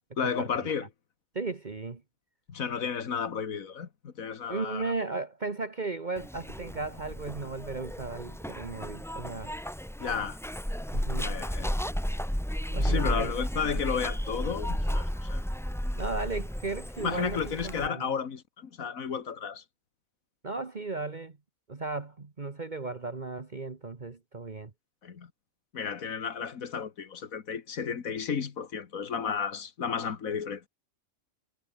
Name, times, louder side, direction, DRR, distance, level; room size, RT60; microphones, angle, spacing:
voice 1, 0.2-0.9 2.5-4.9 10.0-10.4 11.2-11.8 12.8-15.4 17.0-19.6 25.0-25.3 25.7-30.7, left 6 dB, 90° left, 2.0 m, -33 dB
voice 2, 1.3-2.0 4.5-9.5 10.9-11.3 12.7-13.4 15.9-18.2 20.4-21.4 21.7-24.7, right 3 dB, 35° right, 1.6 m, -36 dB
Zipper (clothing), 6.2-17.9, equal, ahead, 1.2 m, -33 dB
omnidirectional pair, 1.4 m